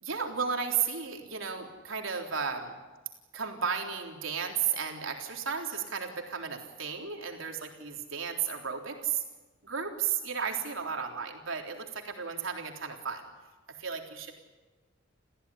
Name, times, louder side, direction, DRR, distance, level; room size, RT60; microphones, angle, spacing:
voice 1, 0.0-2.8 3.3-9.2 9.6-13.2 13.8-14.3, right 6 dB, 80° right, 2 dB, 3.8 m, -34 dB
29.5 x 15.5 x 9.9 m, 1.2 s
head